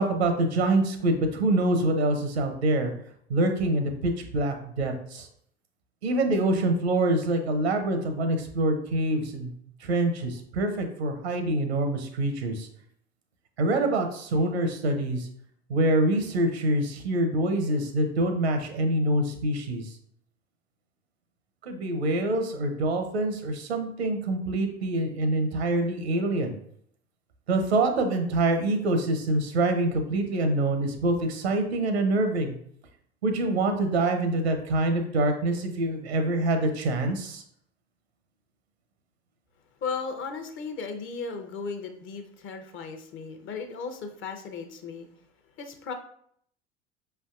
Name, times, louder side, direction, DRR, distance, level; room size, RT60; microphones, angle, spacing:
voice 1, 0.0-2.9 3.3-5.3 6.0-9.5 9.8-12.7 13.6-15.3 15.7-19.9 21.6-26.5 27.5-32.5 33.2-37.4, right 2 dB, 80° right, 6 dB, 0.8 m, -25 dB
voice 2, 39.8-45.1 45.6-45.9, left 5 dB, 40° left, 6 dB, 0.7 m, -36 dB
5.2 x 3.3 x 2.4 m, 0.66 s
figure-of-eight pair, 70°, 31 cm